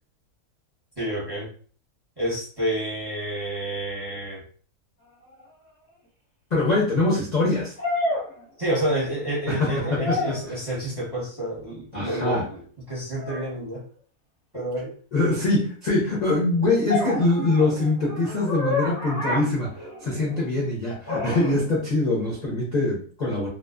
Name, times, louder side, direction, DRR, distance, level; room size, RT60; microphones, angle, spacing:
voice 1, 1.0-1.5 2.2-4.4 8.6-12.6 12.9-13.8 14.5-14.9, right 1 dB, 20° right, -6 dB, 0.8 m, -29 dB
sound 1, 5.4-5.5 7.8-9.1 9.4-10.5 13.2-13.5 16.9-20.4 21.0-21.6, left 2 dB, 15° left, 0.8 m, -30 dB
voice 2, 6.5-7.7 9.5-10.5 11.9-12.5 15.1-19.7 20.0-23.5, left 2 dB, 45° left, -5 dB, 0.5 m, -23 dB
2.4 x 2.3 x 2.3 m, 0.43 s
omnidirectional pair, 1.6 m